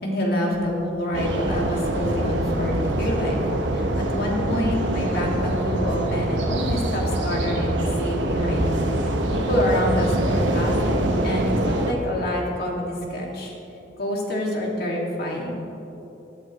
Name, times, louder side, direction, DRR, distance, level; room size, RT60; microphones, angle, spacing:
voice 1, 0.0-3.4 3.7-13.6 14.0-15.6, left 1 dB, 60° left, -2 dB, 2.3 m, -27 dB
sound 1, 1.1-11.9, right 1 dB, 75° right, 1.1 m, -24 dB
18.5 x 11.0 x 3.1 m, 3.0 s
head